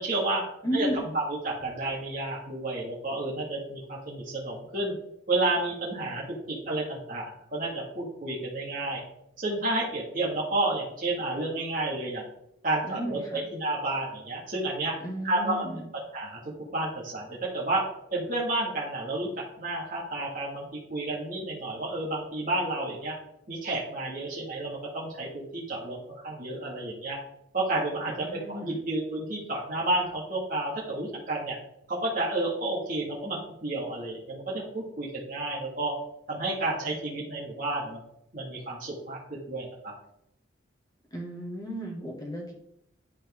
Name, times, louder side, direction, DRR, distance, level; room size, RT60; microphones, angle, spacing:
voice 1, 0.0-0.4 0.7-0.9 1.1-4.9 5.3-9.0 9.4-12.2 12.6-14.9 15.2-15.6 16.1-16.4 16.7-17.8 18.1-19.3 19.6-23.2 23.5-26.0 26.2-27.2 27.5-31.6 31.9-35.9 36.3-38.0 38.3-39.9, right 2 dB, 45° right, -5 dB, 1.9 m, -31 dB
voice 2, 0.6-1.2 12.8-13.4 15.0-15.8 28.2-28.8 41.1-42.5, equal, 20° left, -1 dB, 1.7 m, -34 dB
10.5 x 4.4 x 3.6 m, 0.78 s
head